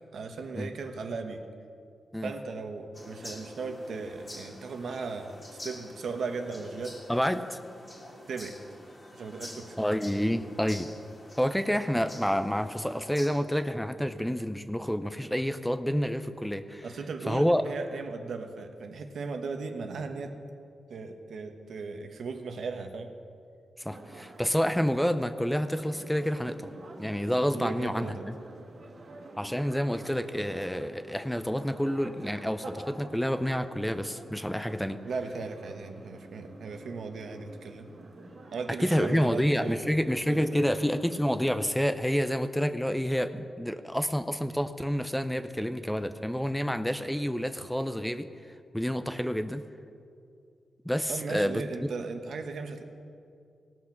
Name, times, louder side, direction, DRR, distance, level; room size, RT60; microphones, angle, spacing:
voice 1, 0.1-1.4 2.2-5.4 5.6-7.0 8.3-8.6 9.1-9.8 16.8-20.3 20.9-23.1 27.5-28.2 35.0-37.9 38.5-39.9 40.3-40.6 51.1-52.8, right 4 dB, 75° right, 6 dB, 1.0 m, -37 dB
sound 1, 2.9-13.3, left 1 dB, 25° left, 2.0 m, -47 dB
voice 2, 7.1-7.6 9.8-10.9 11.4-16.9 17.3-17.6 23.8-26.7 27.0-28.4 29.4-35.0 38.8-48.3 48.7-49.7 50.9-51.6, equal, 5° left, 10 dB, 0.5 m, -28 dB
sound 2, 23.9-41.6, right 2 dB, 55° right, 1.7 m, -48 dB
17.5 x 6.1 x 5.8 m, 2.4 s
cardioid pair, 95°, 0 cm